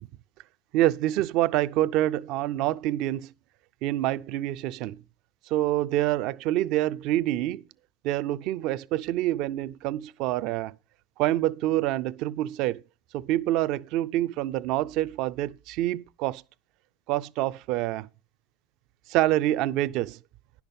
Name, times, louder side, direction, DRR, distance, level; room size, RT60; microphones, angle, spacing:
voice 1, 0.7-3.3 3.8-5.0 5.5-7.6 8.0-10.7 11.2-12.8 13.1-16.4 17.1-18.1 19.1-20.2, right 14 dB, 55° right, 0.4 m, -26 dB
10.5 x 5.9 x 5.4 m
hypercardioid pair, 100°, 0 cm